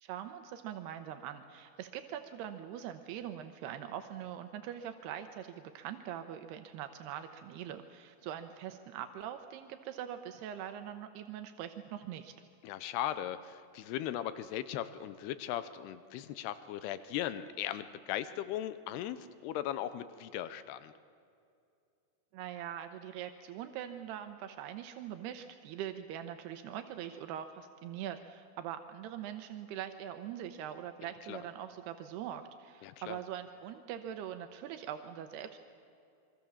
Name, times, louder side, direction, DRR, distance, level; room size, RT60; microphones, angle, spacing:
voice 1, 0.0-12.3 22.3-35.6, right 10 dB, 85° right, 8 dB, 3.0 m, -42 dB
voice 2, 12.6-20.9 31.0-31.4 32.8-33.2, left 12 dB, 85° left, 13 dB, 2.9 m, -38 dB
26.5 x 24.0 x 7.2 m, 2.5 s
omnidirectional pair, 4.6 m